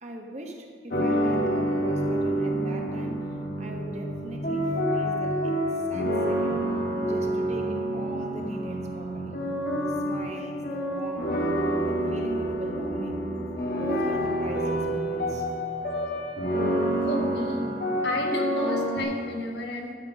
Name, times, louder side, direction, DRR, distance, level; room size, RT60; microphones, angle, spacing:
voice 1, 0.0-6.6 7.0-9.4 9.7-11.4 11.8-13.2 13.8-15.5, right 1 dB, 40° right, 2 dB, 1.2 m, -40 dB
sound 1, 0.9-19.0, equal, 55° left, 1.5 m, -28 dB
voice 2, 17.1-17.6 18.0-19.9, left 1 dB, 70° left, 1 dB, 1.5 m, -32 dB
12.0 x 5.9 x 6.1 m, 2.2 s
head